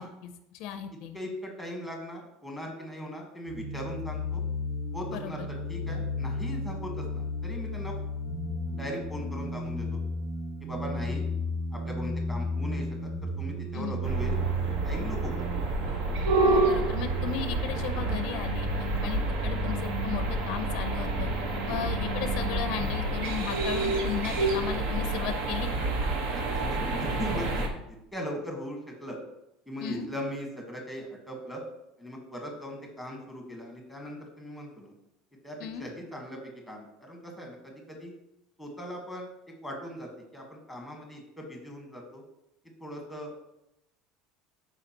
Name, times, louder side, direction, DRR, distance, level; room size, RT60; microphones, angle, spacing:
voice 1, 0.0-1.2 5.1-5.5 13.7-14.0 16.4-18.7 19.0-21.3 21.7-25.9 29.8-30.1 35.6-35.9, left 9 dB, 50° left, 9 dB, 0.5 m, -36 dB
voice 2, 1.1-4.4 4.9-5.4 5.7-7.9 8.7-10.0 10.6-11.3 11.7-13.1 13.4-14.3 14.8-15.3 21.6-21.9 26.3-27.7 28.1-29.2 29.7-31.6 32.0-34.9 35.4-36.4 36.7-38.1 38.6-39.3 39.6-42.2 42.8-43.3, equal, ahead, 1 dB, 1.3 m, -39 dB
sound 1, 3.5-23.1, equal, 25° right, 1.5 m, -34 dB
sound 2, 14.0-27.7, right 2 dB, 60° right, 1.3 m, -29 dB
13.0 x 4.8 x 2.9 m, 0.86 s
cardioid pair, 175°, 0 cm